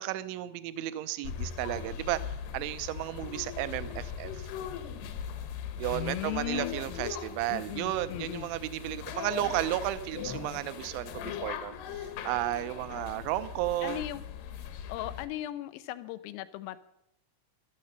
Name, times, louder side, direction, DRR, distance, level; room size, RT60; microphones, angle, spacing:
voice 1, 0.0-2.2 2.5-4.5 5.8-14.0, right 15 dB, 80° right, 13 dB, 2.9 m, -33 dB
sound 1, 1.2-15.3, left 8 dB, 70° left, 2.7 m, -40 dB
voice 2, 5.9-7.0 7.5-8.5 13.8-14.2 14.9-16.8, left 14 dB, 90° left, 13 dB, 3.5 m, -37 dB
15.5 x 12.0 x 6.7 m, 0.81 s
omnidirectional pair, 5.8 m